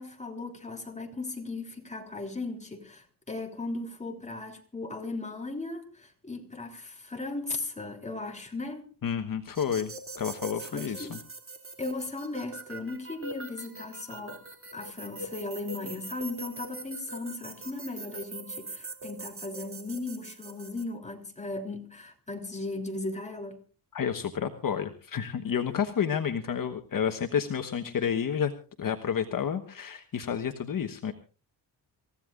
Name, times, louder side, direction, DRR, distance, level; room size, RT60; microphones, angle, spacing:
voice 1, 0.0-8.9 10.7-11.2 11.8-14.4 14.7-23.6, left 2 dB, 15° left, 3.2 m, -37 dB
voice 2, 9.0-11.2 23.9-28.5 28.8-31.1, left 7 dB, 55° left, 1.3 m, -30 dB
sound 1, 9.5-20.8, right 2 dB, 30° right, 2.8 m, -42 dB
28.0 x 15.5 x 2.5 m
cardioid pair, 105°, 41 cm